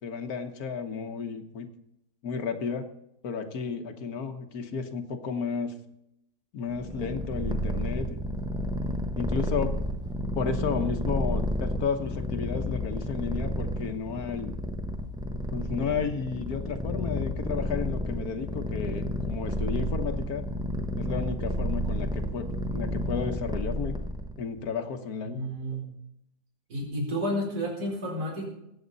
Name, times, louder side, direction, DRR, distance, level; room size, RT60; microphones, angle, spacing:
voice 1, 0.0-1.7 2.2-2.8 3.2-5.7 6.5-8.2 9.2-9.7 10.3-14.5 15.5-20.4 21.0-23.9 24.4-25.4, left 6 dB, 75° left, 7 dB, 1.7 m, -32 dB
Purr, 6.7-24.4, equal, 5° right, 0.6 m, -31 dB
voice 2, 25.2-25.9 26.7-28.4, equal, 80° right, -2 dB, 4.6 m, -31 dB
21.0 x 8.7 x 4.1 m, 0.81 s
omnidirectional pair, 1.6 m